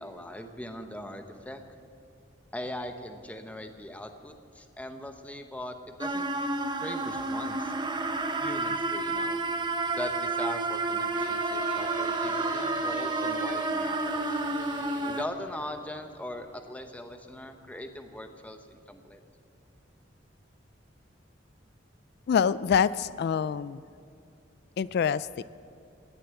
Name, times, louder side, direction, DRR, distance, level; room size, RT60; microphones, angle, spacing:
voice 1, 0.0-1.6 2.5-6.3 6.8-7.7 8.4-9.4 10.0-14.3 15.1-19.2, left 1 dB, 10° left, 6 dB, 0.8 m, -40 dB
sound 1, 6.0-15.2, right 3 dB, 25° right, 0.8 m, -30 dB
sound 2, 11.1-16.6, right 1 dB, 50° right, 4.0 m, -41 dB
voice 2, 22.3-23.8 24.8-25.4, left 7 dB, 60° left, 17 dB, 0.3 m, -26 dB
18.0 x 6.9 x 8.2 m, 2.5 s
head